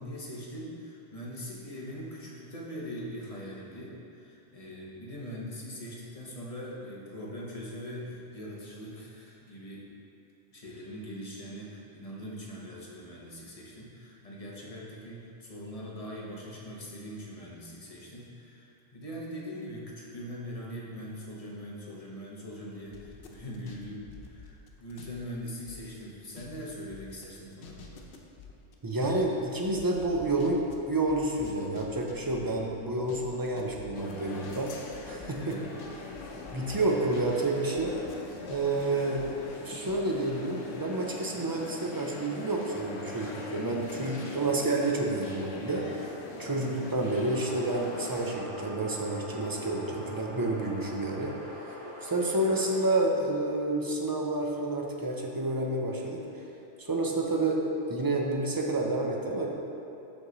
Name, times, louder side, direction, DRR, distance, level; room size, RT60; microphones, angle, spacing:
voice 1, 0.0-9.9 10.5-28.0 35.3-35.7 46.4-46.8, equal, 30° left, -4 dB, 1.0 m, -42 dB
sound 1, 22.9-25.2 25.5-37.3 37.6-40.0 40.2-40.3, left 5 dB, 55° left, 0.7 m, -49 dB
voice 2, 28.8-34.7 35.0-35.6 36.5-38.2 38.5-39.3 39.6-46.1 46.4-51.3 51.6-51.8 52.0-56.2 56.8-57.6 57.9-59.5, right 2 dB, 35° right, -1 dB, 0.3 m, -29 dB
sound 2, 33.9-48.3, left 2 dB, 85° left, 1.0 m, -42 dB
sound 3, 47.3-52.8, equal, 55° right, 1.6 m, -42 dB
6.1 x 5.7 x 3.9 m, 2.7 s
omnidirectional pair, 1.2 m